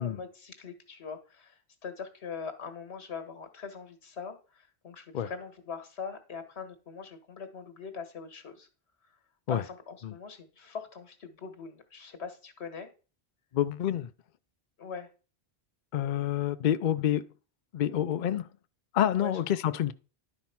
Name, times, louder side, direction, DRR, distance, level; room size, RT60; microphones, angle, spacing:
voice 1, 0.0-8.7 9.5-12.9 14.8-15.1 19.1-19.4, left 5 dB, 90° left, 1.7 m, -42 dB
voice 2, 13.5-14.1 15.9-17.3 17.7-18.5 18.9-19.9, left 11 dB, 55° left, 0.6 m, -28 dB
11.0 x 4.2 x 5.8 m
omnidirectional pair, 1.1 m